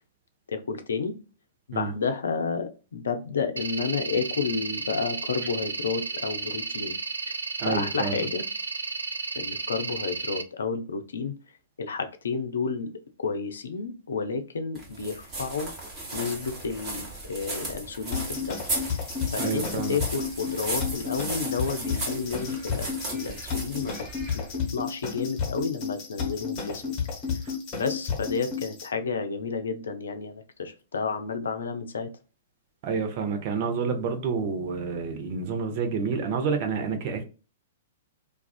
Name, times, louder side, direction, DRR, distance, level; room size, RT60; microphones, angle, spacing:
voice 1, 0.5-1.2 1.7-7.0 7.6-8.5 9.3-11.4 11.8-12.9 13.2-15.7 16.1-18.6 18.9-19.0 19.3-23.9 24.3-24.5 24.7-26.8 27.7-32.1, left 5 dB, 70° left, 0.4 m, -31 dB
sound 1, 3.6-10.4, right 4 dB, 80° right, 0.3 m, -33 dB
voice 2, 7.6-8.3 19.4-20.0 32.8-37.2, right 5 dB, 45° right, 0.7 m, -29 dB
sound 2, 14.8-24.6, right 2 dB, 30° right, 1.2 m, -36 dB
sound 3, 18.1-28.9, left 6 dB, 30° left, 1.2 m, -32 dB
2.4 x 2.3 x 2.2 m
figure-of-eight pair, 110°, 0 cm